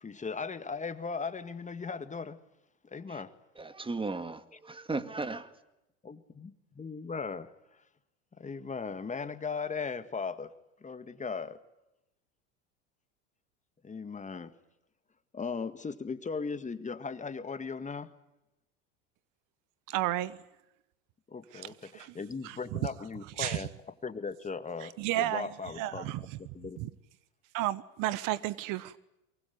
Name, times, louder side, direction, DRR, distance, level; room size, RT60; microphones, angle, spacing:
voice 1, 0.0-2.4 2.9-3.3 6.0-7.5 8.4-10.5 10.8-11.6 13.8-14.5 15.3-18.1 21.3-23.7 24.0-26.1 26.5-26.8, left 5 dB, 20° left, 1.8 m, -38 dB
voice 2, 3.5-5.6, right 3 dB, 15° right, 2.1 m, -36 dB
voice 3, 19.9-20.4 21.5-22.2 22.4-22.8 23.4-23.7 24.8-26.9 27.5-29.0, right 15 dB, 60° right, 1.2 m, -33 dB
23.5 x 23.0 x 9.5 m
hypercardioid pair, 90°, 37 cm